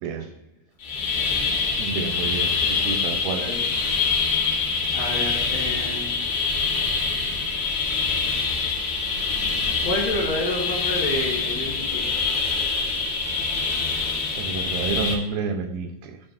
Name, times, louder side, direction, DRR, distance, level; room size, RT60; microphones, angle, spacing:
sound 1, 0.8-15.2, left 5 dB, 75° left, 1.3 m, -25 dB
voice 1, 1.8-3.5 14.3-16.2, right 5 dB, 80° right, 7 dB, 2.4 m, -29 dB
voice 2, 3.4-3.7 4.9-6.3 9.8-12.1, left 1 dB, 55° left, -7 dB, 2.1 m, -29 dB
13.0 x 4.4 x 2.5 m, 0.90 s
omnidirectional pair, 4.5 m